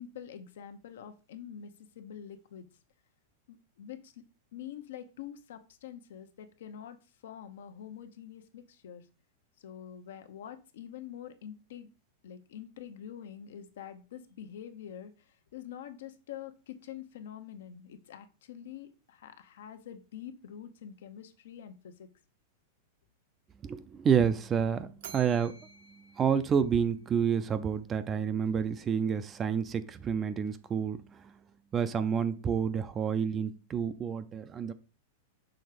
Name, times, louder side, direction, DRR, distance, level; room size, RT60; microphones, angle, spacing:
voice 1, 0.0-1.7 2.0-2.6 3.5-4.1 4.5-7.0 7.2-9.0 9.6-11.9 12.2-15.1 15.5-22.1, left 9 dB, 75° left, 8 dB, 0.9 m, -46 dB
voice 2, 23.6-25.5 26.2-31.2 31.7-34.7, right 7 dB, 25° right, 12 dB, 0.5 m, -29 dB
Bell, 25.0-27.3, right 7 dB, 75° right, 1.0 m, -51 dB
6.2 x 3.4 x 5.0 m, 0.33 s
supercardioid pair, 135°, 0 cm